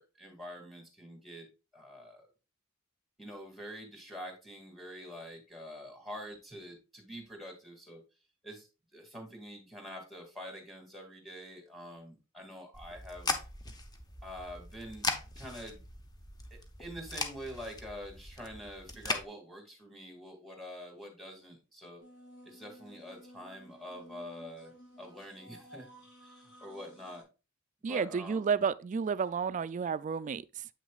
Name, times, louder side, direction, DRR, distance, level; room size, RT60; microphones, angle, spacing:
voice 1, 0.0-1.5 1.7-2.3 3.2-8.0 8.4-13.4 14.2-15.1 15.4-15.8 16.5-22.0 22.5-25.9 26.2-27.3 27.8-28.6, equal, ahead, 1.9 m, -46 dB
sound 1, 12.7-19.2, left 3 dB, 20° left, 0.7 m, -39 dB
sound 2, 22.0-27.2, equal, 70° left, 4.2 m, -54 dB
voice 2, 27.8-30.7, right 6 dB, 35° right, 0.3 m, -31 dB
8.1 x 6.1 x 2.3 m
head